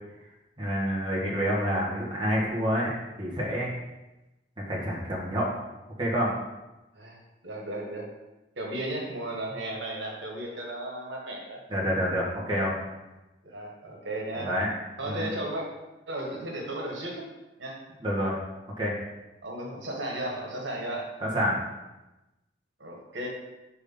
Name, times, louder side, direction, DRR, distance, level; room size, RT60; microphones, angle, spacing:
voice 1, 0.6-2.9 3.2-3.7 4.7-5.5 6.0-6.3 11.7-12.7 14.4-14.7 15.0-15.3 18.0-18.4 18.8-19.0 21.2-21.6, equal, 25° right, -5 dB, 1.7 m, -27 dB
voice 2, 6.9-8.1 8.5-11.6 13.4-14.5 15.0-15.6 16.1-17.2 17.6-17.9 19.4-21.1 22.8-23.3, right 1 dB, 85° right, -1 dB, 1.6 m, -35 dB
5.2 x 4.8 x 5.5 m, 1.0 s
head